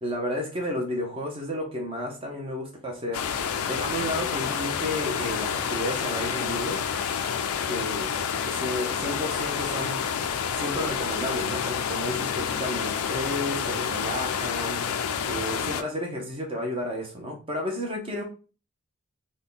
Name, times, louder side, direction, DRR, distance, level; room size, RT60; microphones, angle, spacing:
voice 1, 0.0-3.2 3.7-6.8 7.7-8.1 8.4-10.0 10.6-14.9 15.3-18.2, left 1 dB, 25° right, 0.7 m, -32 dB
sound 1, 3.1-15.8, left 7 dB, 75° left, 0.4 m, -29 dB
3.7 x 2.2 x 3.8 m
head